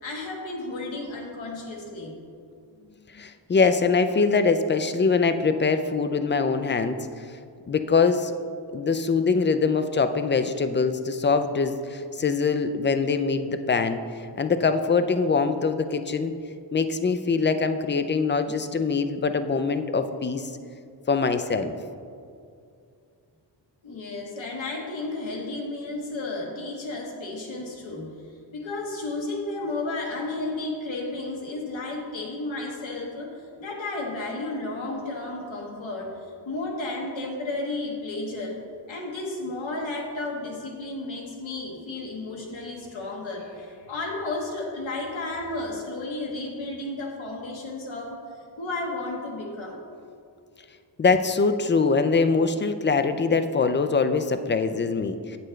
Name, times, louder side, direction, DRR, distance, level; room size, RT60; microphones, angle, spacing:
voice 1, 0.0-2.1 23.8-28.1 28.5-36.2 36.4-38.6 38.9-48.2 48.6-49.8, left 2 dB, 85° left, -1 dB, 1.3 m, -33 dB
voice 2, 3.1-7.1 7.7-8.3 8.7-14.0 14.4-16.3 16.7-20.5 21.1-21.8 51.0-55.4, left 4 dB, 25° left, 10 dB, 0.4 m, -23 dB
8.6 x 6.8 x 3.2 m, 2.4 s
wide cardioid pair, 85°, 45 cm